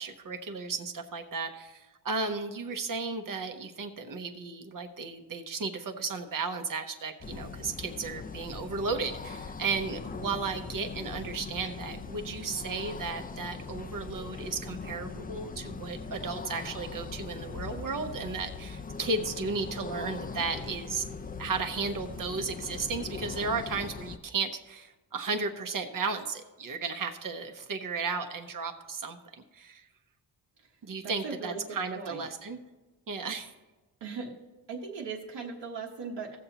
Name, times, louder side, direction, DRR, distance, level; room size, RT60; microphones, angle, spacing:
voice 1, 0.0-21.1 21.4-29.2 29.5-29.9 30.8-32.6 33.1-33.5, right 4 dB, 50° right, 6 dB, 0.9 m, -34 dB
sound 1, 7.2-24.2, left 4 dB, 20° left, 0.4 m, -40 dB
voice 2, 31.0-32.3 34.0-34.3 34.7-36.4, right 5 dB, 90° right, -3 dB, 1.2 m, -39 dB
17.0 x 6.9 x 2.9 m, 1.2 s
wide cardioid pair, 130°, 42 cm